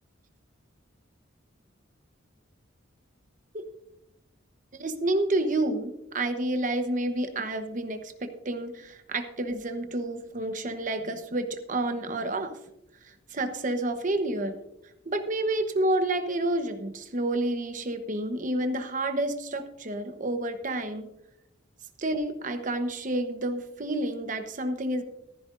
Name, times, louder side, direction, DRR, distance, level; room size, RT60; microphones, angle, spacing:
voice 1, 4.8-12.6 13.0-14.5 15.1-21.1 22.0-25.0, right 1 dB, 40° right, 8 dB, 1.0 m, -29 dB
14.5 x 14.0 x 2.5 m, 0.87 s
head